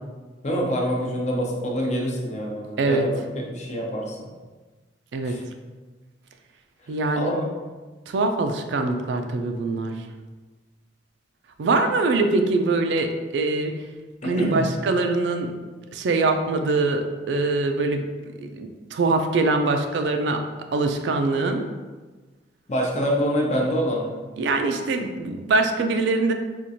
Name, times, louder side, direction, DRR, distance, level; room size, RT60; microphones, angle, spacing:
voice 1, 0.4-4.3 5.2-5.4 7.1-7.5 14.2-14.7 22.7-24.2, equal, 40° left, -1 dB, 0.6 m, -26 dB
voice 2, 6.9-7.3 8.1-9.9 11.6-13.7 14.2-15.5 15.9-18.1 18.4-20.4 20.7-21.7 24.4-26.3, right 3 dB, 70° right, 5 dB, 0.3 m, -23 dB
4.3 x 2.4 x 2.6 m, 1.3 s
head